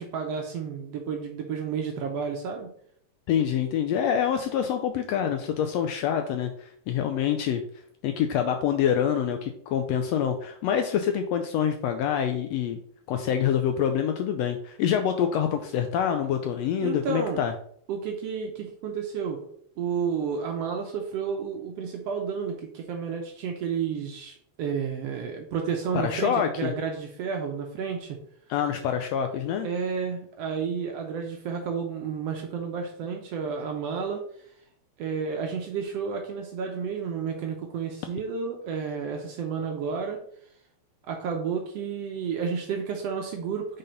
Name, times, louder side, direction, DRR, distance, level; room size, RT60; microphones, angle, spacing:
voice 1, 0.0-2.7 16.8-17.5 17.9-19.4 19.8-28.2 29.6-34.2 35.0-40.2 41.1-43.8, right 6 dB, 70° right, 2 dB, 1.6 m, -31 dB
voice 2, 3.3-7.6 8.0-12.8 13.1-17.5 25.9-26.7 28.5-29.7, left 8 dB, 80° left, 6 dB, 1.6 m, -26 dB
5.7 x 4.0 x 5.2 m, 0.64 s
omnidirectional pair, 3.3 m